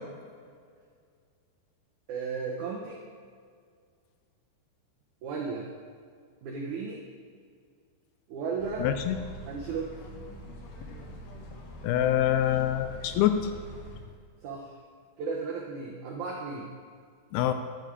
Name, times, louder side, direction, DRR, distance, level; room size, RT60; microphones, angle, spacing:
voice 1, 2.1-3.0 5.2-5.7 6.4-7.0 8.3-8.9 9.5-9.9 14.4-14.7 15.2-16.7, right 5 dB, 90° right, -1 dB, 1.7 m, -34 dB
sound 1, 8.6-14.0, right 1 dB, 65° left, 1.7 m, -44 dB
voice 2, 8.8-9.2 11.8-13.5 17.3-17.5, left 11 dB, 80° left, 8 dB, 2.3 m, -25 dB
10.5 x 9.4 x 5.0 m, 2.1 s
omnidirectional pair, 4.8 m